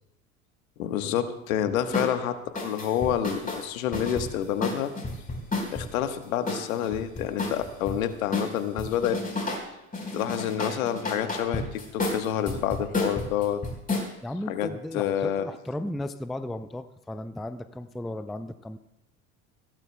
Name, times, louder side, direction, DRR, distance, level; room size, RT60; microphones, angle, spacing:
voice 1, 0.8-4.9 5.7-9.2 10.1-13.6 14.5-14.7 14.9-15.5, left 10 dB, 75° left, 9 dB, 1.3 m, -28 dB
sound 1, 1.9-2.1 2.6-5.9 6.5-8.0 8.3-9.7 9.9-14.1, left 2 dB, 20° left, 4.2 m, -31 dB
voice 2, 14.2-18.8, left 1 dB, ahead, 12 dB, 0.3 m, -35 dB
21.5 x 16.0 x 2.2 m, 0.90 s
hypercardioid pair, 75°, 42 cm